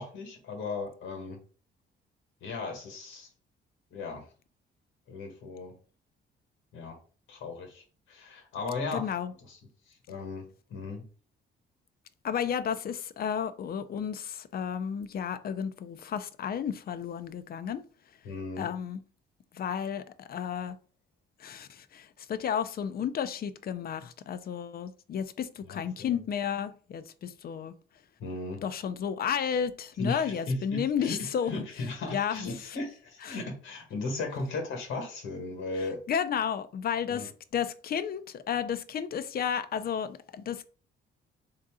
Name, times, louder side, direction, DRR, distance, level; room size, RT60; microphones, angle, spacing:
voice 1, 0.0-1.4 2.4-3.3 3.9-4.3 5.1-5.8 6.7-7.0 7.3-9.6 9.9-11.0 18.2-18.7 25.6-26.2 28.2-28.6 30.0-36.0 37.1-37.3, left 3 dB, 85° left, 1.4 m, -36 dB
voice 2, 8.9-9.3 12.2-17.8 18.6-19.0 19.5-20.8 21.4-27.7 28.6-31.5 32.1-32.4 36.1-40.7, left 8 dB, 50° left, 0.5 m, -32 dB
3.7 x 2.8 x 3.6 m
cardioid pair, 90°, 20 cm